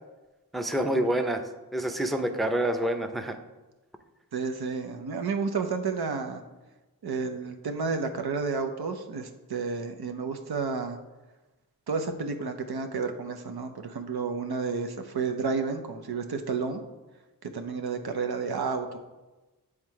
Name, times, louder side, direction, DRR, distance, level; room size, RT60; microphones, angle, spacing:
voice 1, 0.5-1.4 1.7-3.4, right 1 dB, ahead, 5 dB, 0.6 m, -27 dB
voice 2, 4.3-6.4 7.0-11.0 11.9-16.8 17.4-19.0, right 4 dB, 75° right, 6 dB, 0.7 m, -31 dB
7.3 x 3.2 x 4.7 m, 1.1 s
cardioid pair, 40°, 38 cm